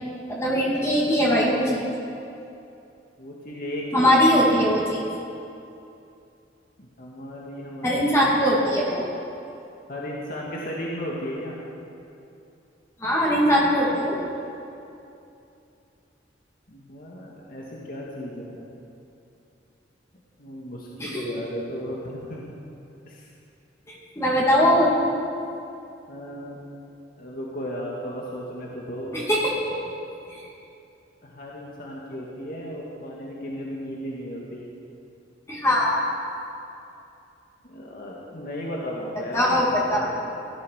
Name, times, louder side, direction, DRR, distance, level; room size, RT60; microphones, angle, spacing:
voice 1, 0.3-1.9 3.9-5.0 7.8-9.0 13.0-14.2 21.0-21.2 23.9-24.9 29.1-29.5 35.5-36.0 39.3-40.1, equal, 15° left, -5 dB, 2.6 m, -21 dB
voice 2, 3.2-4.2 6.8-8.1 9.9-11.6 16.7-18.7 20.4-22.5 23.1-23.3 26.1-26.6 27.2-29.3 31.2-34.7 37.6-40.3, equal, 55° left, -3 dB, 2.1 m, -35 dB
17.5 x 13.0 x 6.5 m, 2.7 s
head